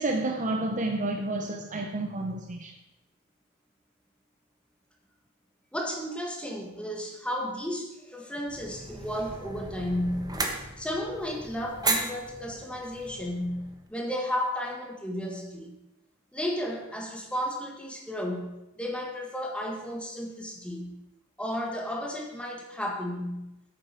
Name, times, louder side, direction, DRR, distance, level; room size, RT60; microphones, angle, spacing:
voice 1, 0.0-2.7, right 2 dB, 35° right, 3 dB, 0.9 m, -30 dB
voice 2, 5.7-10.4 10.8-15.8 16.3-21.0 21.4-23.5, equal, 5° left, 0 dB, 1.7 m, -33 dB
sound 1, 8.5-13.9, right 3 dB, 20° right, 1.3 m, -35 dB
9.3 x 8.7 x 6.0 m, 0.94 s
head